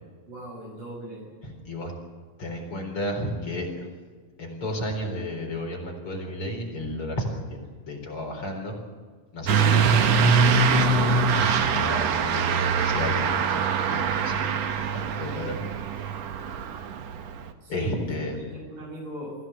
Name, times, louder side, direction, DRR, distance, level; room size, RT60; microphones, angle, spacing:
voice 1, 0.3-1.3 17.6-17.9 18.5-19.4, equal, 85° right, 0 dB, 8.6 m, -38 dB
voice 2, 1.4-1.9 2.4-3.9 4.4-8.8 9.3-15.6 15.9-16.0 17.7-18.5, left 1 dB, 40° left, 1 dB, 4.9 m, -33 dB
Truck / Accelerating revving vroom, 9.5-17.4, right 5 dB, 60° right, 2.1 m, -23 dB
23.5 x 16.0 x 8.1 m, 1.5 s
omnidirectional pair, 3.9 m